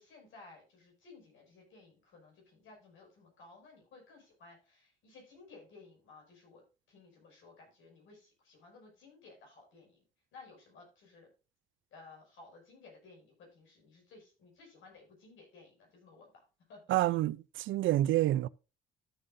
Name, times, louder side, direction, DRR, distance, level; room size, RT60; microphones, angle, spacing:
voice 1, 0.0-6.6 6.9-10.0 10.3-11.3 11.9-17.0, left 3 dB, 80° left, 6.0 m, -57 dB
voice 2, 16.9-18.5, right 15 dB, 75° right, 0.4 m, -28 dB
13.5 x 7.5 x 2.6 m
cardioid pair, 90°, 20 cm